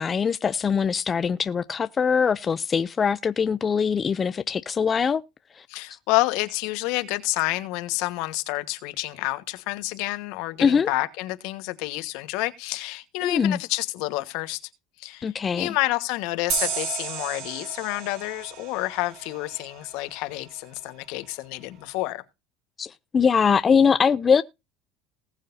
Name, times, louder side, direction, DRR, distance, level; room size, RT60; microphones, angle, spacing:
voice 1, 0.0-5.2 5.6-5.7 10.6-10.9 13.2-13.6 15.2-15.7 22.8-24.4, left 6 dB, 30° left, 0.4 m, -22 dB
voice 2, 5.7-14.6 15.0-22.2, left 20 dB, 75° left, 1.4 m, -29 dB
sound 1, 16.5-19.8, right 6 dB, 65° right, 3.5 m, -32 dB
19.5 x 6.5 x 2.7 m
supercardioid pair, 115°, 0 cm